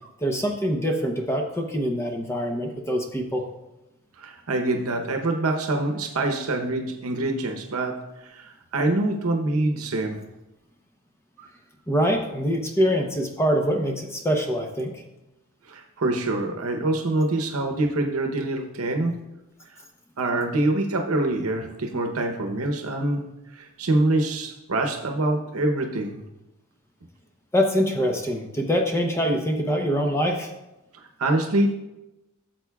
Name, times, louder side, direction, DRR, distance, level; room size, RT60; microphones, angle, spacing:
voice 1, 0.2-3.5 11.9-15.0 27.5-30.5, equal, 10° left, 3 dB, 0.7 m, -24 dB
voice 2, 4.2-10.2 15.7-19.1 19.7-19.8 20.2-26.2 30.9-31.7, right 2 dB, 75° right, 3 dB, 0.8 m, -25 dB
13.0 x 7.5 x 2.3 m, 0.96 s
head